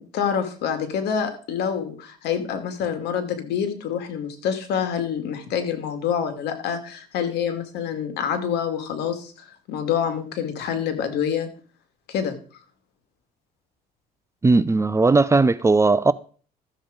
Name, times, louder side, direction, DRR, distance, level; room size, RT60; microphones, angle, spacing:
voice 1, 0.0-11.5 12.1-12.4, left 7 dB, 80° left, 2.3 m, -27 dB
voice 2, 14.4-16.1, right 3 dB, 15° right, 0.5 m, -17 dB
13.5 x 7.5 x 5.1 m
cardioid pair, 110°, 17 cm